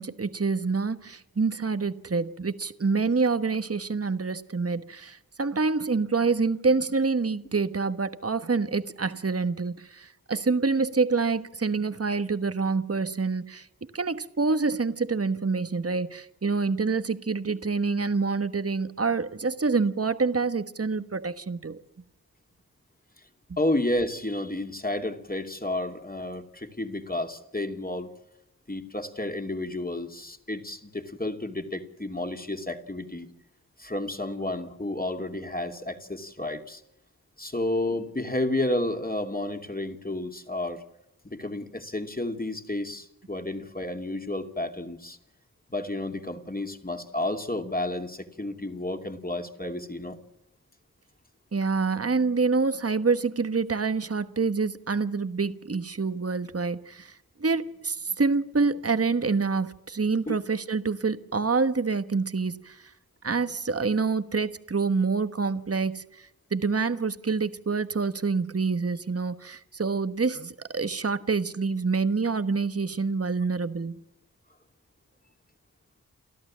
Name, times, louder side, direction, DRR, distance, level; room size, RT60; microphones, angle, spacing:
voice 1, 0.0-13.7 13.9-21.8 51.5-62.9 63.2-74.1, right 4 dB, 40° right, 1.2 m, -27 dB
voice 2, 23.6-28.1 28.7-33.3 33.8-36.8 37.4-40.8 41.2-45.2 45.7-50.2 60.3-60.4, left 1 dB, 25° left, 2.8 m, -31 dB
29.5 x 12.0 x 7.4 m
cardioid pair, 40°, 36 cm